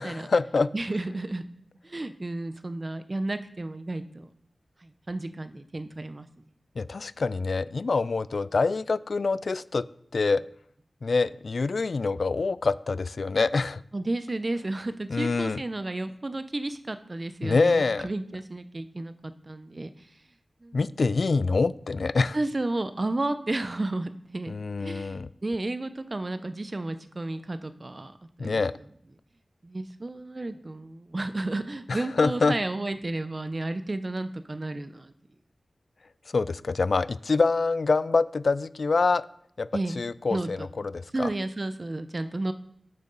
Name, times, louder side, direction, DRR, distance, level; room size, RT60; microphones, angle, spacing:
voice 1, 0.0-0.7 6.8-9.9 10.1-10.4 11.0-13.8 15.1-15.6 17.4-18.1 20.7-22.4 24.5-25.3 28.4-28.7 31.9-32.5 36.3-39.2 39.6-39.7 40.0-40.6 40.9-41.3, left 4 dB, 70° left, 17 dB, 0.4 m, -25 dB
voice 2, 0.7-1.4 1.8-4.3 4.8-6.3 13.9-20.1 20.6-20.9 22.3-24.5 24.8-28.1 28.4-28.6 29.6-35.1 39.7-40.0 40.3-40.7 41.1-42.5, right 2 dB, 40° right, 11 dB, 0.7 m, -32 dB
11.0 x 7.0 x 4.0 m, 0.69 s
cardioid pair, 50°, 0 cm